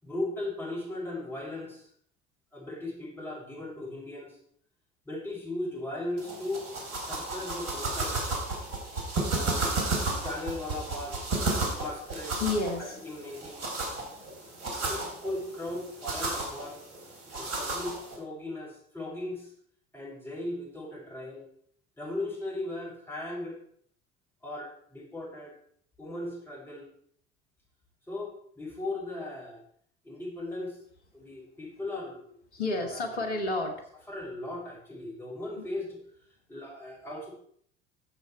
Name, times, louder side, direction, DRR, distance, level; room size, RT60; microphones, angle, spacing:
voice 1, 0.0-1.9 2.5-4.4 5.0-6.6 7.0-8.2 9.3-9.8 10.2-11.2 11.8-12.4 13.0-13.6 14.9-16.8 17.3-19.5 19.9-21.5 22.0-23.6 24.4-25.6 26.0-26.9 28.1-29.6 30.0-30.8 31.1-32.2 32.6-33.0 34.1-36.0 36.5-37.3, left 2 dB, 5° left, -4 dB, 6.2 m, -37 dB
sound 1, 6.2-18.2, right 2 dB, 50° right, 3.7 m, -33 dB
voice 2, 12.4-13.0 13.8-14.9 32.5-33.9 35.6-35.7, left 2 dB, 75° left, 4 dB, 2.3 m, -32 dB
14.5 x 7.4 x 4.5 m, 0.63 s
figure-of-eight pair, 65°, 35 cm